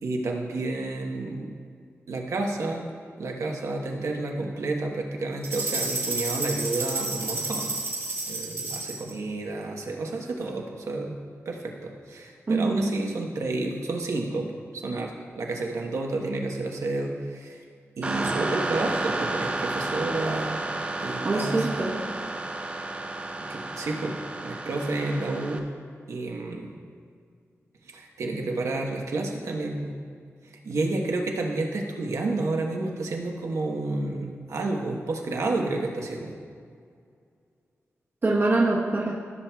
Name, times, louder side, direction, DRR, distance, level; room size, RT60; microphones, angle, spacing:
voice 1, 0.0-1.6 2.1-2.9 3.2-7.7 8.3-17.6 18.0-20.7 21.0-21.7 23.5-25.7 26.1-26.7 27.8-30.0 30.6-36.3, right 2 dB, 85° right, 1 dB, 1.1 m, -30 dB
sound 1, 5.4-9.1, right 3 dB, 70° right, 1.8 m, -30 dB
voice 2, 12.5-12.8 21.2-21.9 38.2-39.1, right 2 dB, 40° right, -4 dB, 1.0 m, -24 dB
sound 2, 18.0-25.6, right 2 dB, 25° right, 0.6 m, -32 dB
15.0 x 7.4 x 2.3 m, 2.2 s
wide cardioid pair, 165°, 5 cm